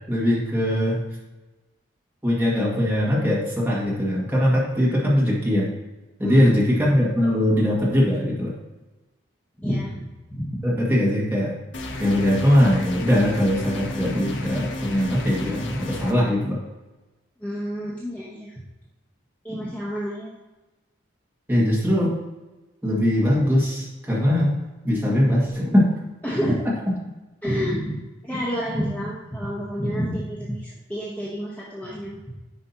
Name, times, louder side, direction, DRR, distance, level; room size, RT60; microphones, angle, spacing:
voice 1, 0.1-1.0 2.2-5.7 6.2-8.5 10.6-11.6 12.0-16.6 21.5-22.1 22.8-24.6 24.8-25.9, equal, 10° right, -6 dB, 1.9 m, -21 dB
voice 2, 6.2-6.5 9.6-10.6 17.4-18.5 19.4-20.3 26.2-26.6 27.4-32.2, equal, 10° left, -7 dB, 1.0 m, -29 dB
sound 1, 11.7-16.1, left 1 dB, 65° left, 0.9 m, -33 dB
9.8 x 5.2 x 2.8 m, 1.1 s
head